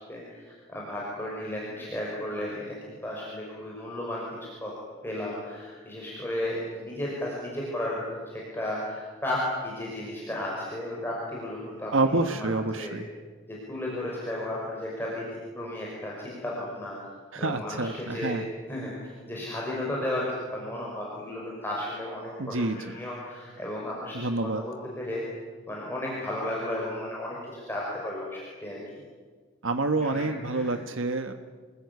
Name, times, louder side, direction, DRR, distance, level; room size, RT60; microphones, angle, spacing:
voice 1, 0.1-4.2 4.6-4.7 5.0-12.5 12.8-12.9 13.5-15.2 15.5-17.0 17.4-18.4 18.7-20.3 20.5-25.2 25.7-28.8 30.0-30.8, left 1 dB, 10° left, -4 dB, 5.7 m, -34 dB
voice 2, 11.9-13.0 17.3-18.4 22.4-22.9 24.1-24.6 29.6-31.3, right 2 dB, 80° right, 8 dB, 1.4 m, -28 dB
28.5 x 21.5 x 9.7 m, 1.5 s
head